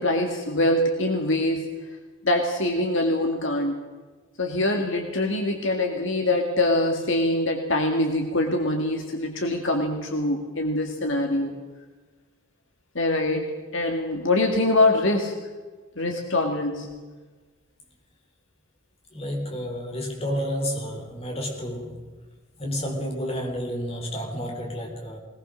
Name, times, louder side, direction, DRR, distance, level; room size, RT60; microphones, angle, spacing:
voice 1, 0.0-1.7 2.2-3.7 4.4-11.5 13.0-15.3 16.0-16.9, left 1 dB, 55° left, 3 dB, 2.0 m, -24 dB
voice 2, 19.1-22.1 22.6-25.2, equal, 25° left, 1 dB, 3.9 m, -30 dB
21.0 x 19.0 x 6.5 m, 1.4 s
head